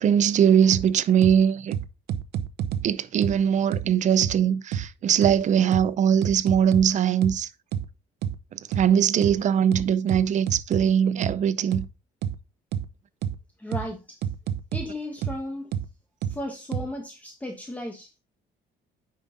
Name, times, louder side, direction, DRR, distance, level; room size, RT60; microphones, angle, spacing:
voice 1, 0.0-1.8 2.8-7.5 8.5-11.8, right 8 dB, 45° right, 0.6 m, -21 dB
sound 1, 0.7-0.8 1.2-1.3 1.7-2.8 3.2-3.3 3.7-3.8 4.2-4.3 4.7-4.8 5.2-5.3 5.7-5.8 6.2-6.8 7.2-7.3 7.7-7.8 8.2-8.3 8.7-8.8 9.2-9.3 9.7-10.8 11.2-11.3 11.7-11.8 12.2-12.3 12.7-12.8 13.2-13.3 13.7-13.8 14.2-14.8 15.2-15.3 15.7-15.8 16.2-16.3 16.7-16.8, right 9 dB, 75° right, 0.8 m, -28 dB
voice 2, 13.6-14.2 14.7-15.7 16.2-18.2, left 1 dB, 10° left, 1.2 m, -35 dB
9.1 x 5.4 x 3.7 m
cardioid pair, 110°, 17 cm